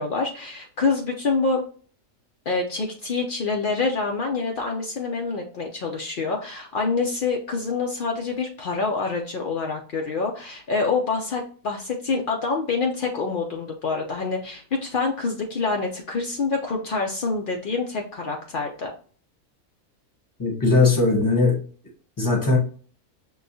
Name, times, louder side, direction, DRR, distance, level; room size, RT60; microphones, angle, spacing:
voice 1, 0.0-1.6 2.5-18.9, left 4 dB, 75° left, 1 dB, 0.4 m, -26 dB
voice 2, 20.4-21.6 22.2-22.6, left 3 dB, 15° left, 0 dB, 0.8 m, -19 dB
6.4 x 2.3 x 2.6 m, 0.43 s
omnidirectional pair, 1.6 m